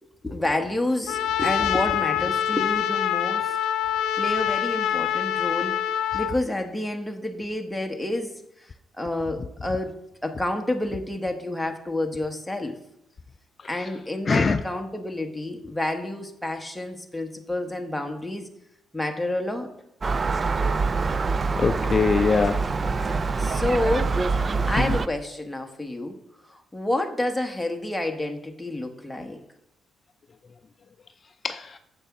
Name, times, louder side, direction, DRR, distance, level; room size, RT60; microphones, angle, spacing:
voice 1, 0.0-3.6 4.2-5.8 6.1-12.8 13.7-18.5 18.9-19.7 23.4-24.3 24.7-26.2 26.5-29.4, left 1 dB, 5° left, 1.2 m, -29 dB
Trumpet, 1.1-6.3, left 10 dB, 85° left, 0.6 m, -25 dB
voice 2, 14.3-14.6 21.6-22.7 24.8-24.9 31.4-31.8, left 5 dB, 40° left, 0.4 m, -22 dB
Gull seagull, 20.0-25.1, right 4 dB, 35° right, 0.4 m, -25 dB
7.2 x 6.8 x 5.8 m
cardioid pair, 90°, 0 cm